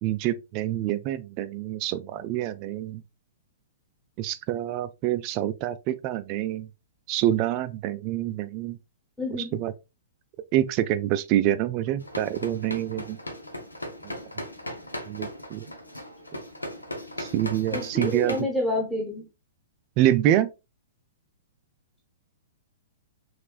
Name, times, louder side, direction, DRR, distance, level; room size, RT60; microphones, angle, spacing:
voice 1, 0.0-3.0 4.2-6.7 7.1-8.8 9.4-9.7 10.5-13.2 14.0-14.1 15.1-15.7 17.2-18.4 20.0-20.5, right 13 dB, 35° right, 0.3 m, -26 dB
voice 2, 9.2-9.6 17.7-19.2, left 1 dB, 5° left, 1.0 m, -29 dB
sound 1, 12.0-18.4, left 1 dB, 80° left, 0.8 m, -37 dB
5.2 x 3.1 x 2.3 m
figure-of-eight pair, 110°, 0 cm